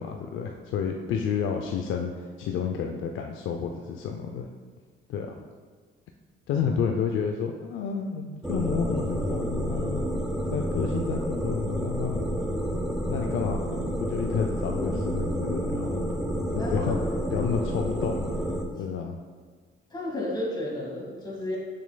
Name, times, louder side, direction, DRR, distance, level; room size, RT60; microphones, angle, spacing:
voice 1, 0.0-4.5 5.1-5.4 6.5-10.0 10.5-12.4 13.1-13.6 14.0-16.0 16.5-17.0 17.3-18.2 18.8-19.2, left 6 dB, 80° left, 3 dB, 0.4 m, -30 dB
sound 1, 8.4-18.6, equal, ahead, 0.6 m, -29 dB
voice 2, 16.5-17.0 19.9-21.6, left 1 dB, 20° left, -3 dB, 1.8 m, -32 dB
6.7 x 6.3 x 2.2 m, 1.5 s
cardioid pair, 90°, 20 cm